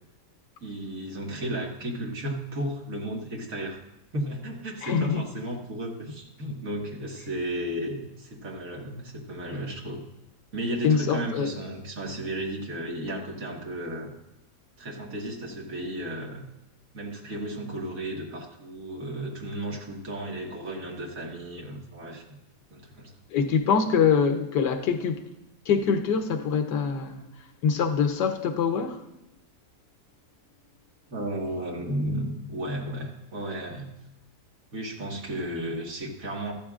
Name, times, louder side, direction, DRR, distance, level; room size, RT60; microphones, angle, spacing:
voice 1, 0.6-3.8 4.1-10.1 10.5-14.1 14.8-16.4 16.9-22.4 22.7-23.1 31.1-33.9 34.7-36.5, right 1 dB, 50° right, 2.1 m, -34 dB
voice 2, 4.8-5.2 10.8-11.5 23.3-25.3 25.7-27.3 27.6-29.0, left 6 dB, 80° left, 1.5 m, -24 dB
14.0 x 12.5 x 2.5 m
omnidirectional pair, 1.8 m